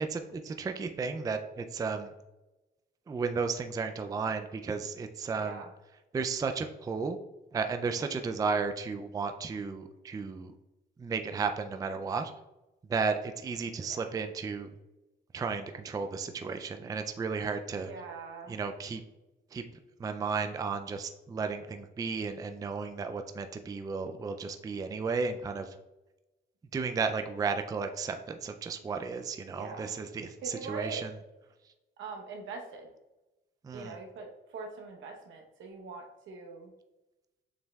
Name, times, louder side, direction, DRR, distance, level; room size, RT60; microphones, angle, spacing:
voice 1, 0.0-2.1 3.1-5.6 6.1-7.2 7.5-10.5 11.0-12.3 12.9-14.7 15.3-17.9 18.5-19.0 19.5-19.6 20.0-25.8 26.7-31.1 33.6-34.0, right 5 dB, 20° right, 7 dB, 0.3 m, -33 dB
voice 2, 5.4-5.7 13.8-14.1 17.8-18.6 29.5-29.9 30.4-31.0 32.0-32.9 33.7-36.7, right 4 dB, 75° right, 2 dB, 0.9 m, -42 dB
7.1 x 3.1 x 2.3 m, 1.0 s
cardioid pair, 90°, 20 cm